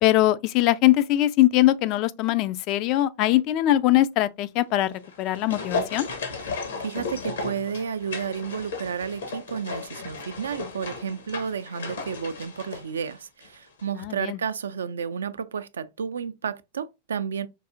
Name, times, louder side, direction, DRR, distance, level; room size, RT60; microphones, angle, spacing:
voice 1, 0.0-6.1 14.0-14.4, left 15 dB, 40° left, 0.3 m, -21 dB
sound 1, 4.9-13.5 13.8-13.9, left 4 dB, 65° left, 0.8 m, -35 dB
voice 2, 6.5-17.5, right 7 dB, 70° right, 0.3 m, -32 dB
4.6 x 2.7 x 2.4 m
figure-of-eight pair, 90°, 0 cm